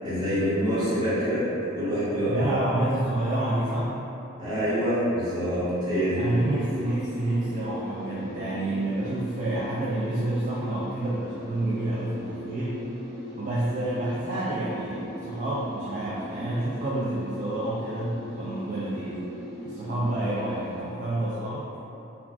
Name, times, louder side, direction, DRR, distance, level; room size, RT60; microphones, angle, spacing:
voice 1, 0.0-1.4 1.7-2.6 4.4-6.2, equal, 20° right, -13 dB, 1.1 m, -26 dB
voice 2, 2.2-3.9 6.2-12.8 13.3-19.3 19.6-21.7, right 1 dB, 40° right, -8 dB, 0.3 m, -29 dB
sound 1, 5.9-20.8, left 1 dB, 75° left, 1.4 m, -39 dB
3.2 x 2.4 x 2.4 m, 2.9 s
head